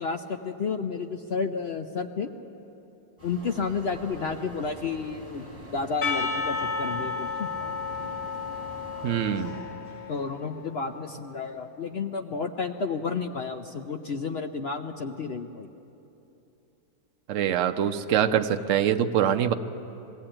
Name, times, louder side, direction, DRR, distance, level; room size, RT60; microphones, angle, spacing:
voice 1, 0.0-2.3 3.2-7.8 10.1-15.7, left 5 dB, 60° left, 5 dB, 0.7 m, -31 dB
sound 1, 3.2-9.5, right 1 dB, 15° left, 7.2 m, -44 dB
Percussion / Church bell, 6.0-11.0, left 4 dB, 80° left, 2.8 m, -32 dB
voice 2, 9.0-9.6 17.3-19.5, right 9 dB, 60° right, 7 dB, 0.9 m, -24 dB
20.0 x 16.0 x 8.8 m, 2.9 s
omnidirectional pair, 1.7 m